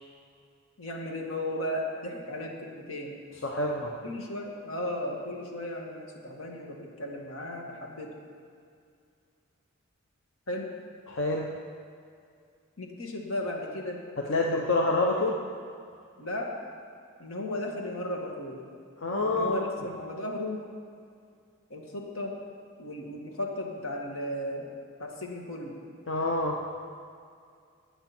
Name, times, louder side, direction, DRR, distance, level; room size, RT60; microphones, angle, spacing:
voice 1, 0.8-3.2 4.0-8.1 10.5-10.7 12.8-14.0 14.4-14.7 15.2-15.3 16.2-16.5 17.2-18.6 19.2-20.6 21.7-22.4 22.8-24.7 25.0-25.8, left 1 dB, 85° left, -1 dB, 2.2 m, -35 dB
voice 2, 3.4-3.9 11.1-11.5 14.3-15.3 19.0-19.6 26.1-26.6, left 2 dB, 60° left, -1 dB, 1.0 m, -27 dB
20.0 x 8.7 x 4.5 m, 2.3 s
head